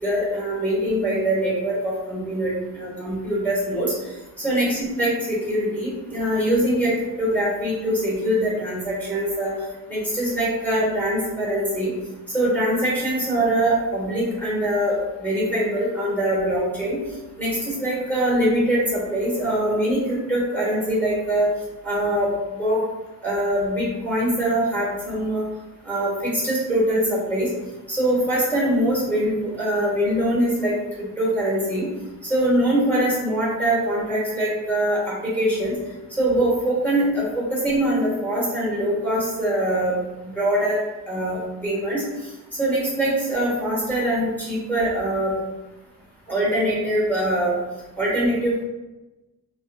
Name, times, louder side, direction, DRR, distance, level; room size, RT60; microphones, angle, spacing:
voice 1, 0.0-3.9 4.4-6.9 7.2-9.5 9.9-11.9 12.3-14.9 15.2-17.0 17.4-21.5 21.8-22.3 22.6-22.8 23.2-25.4 25.8-27.5 27.9-31.9 32.2-35.7 36.2-39.9 40.2-40.8 41.1-42.0 42.6-45.4 46.3-47.5 48.0-48.6, right 1 dB, 5° left, -6 dB, 1.1 m, -23 dB
3.8 x 2.3 x 2.5 m, 1.1 s
cardioid pair, 170°, 34 cm